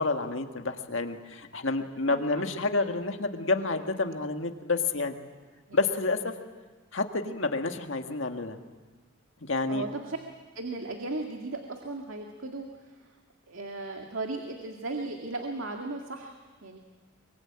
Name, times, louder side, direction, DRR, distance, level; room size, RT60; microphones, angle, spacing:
voice 1, 0.0-5.2 5.7-6.3 6.9-8.6 9.4-9.9, left 3 dB, 70° left, 5 dB, 1.8 m, -29 dB
voice 2, 2.0-2.4 5.7-5.8 9.7-10.2 10.5-13.1 13.5-16.8, right 2 dB, 80° right, 2 dB, 2.1 m, -36 dB
24.0 x 23.5 x 8.8 m, 1.4 s
head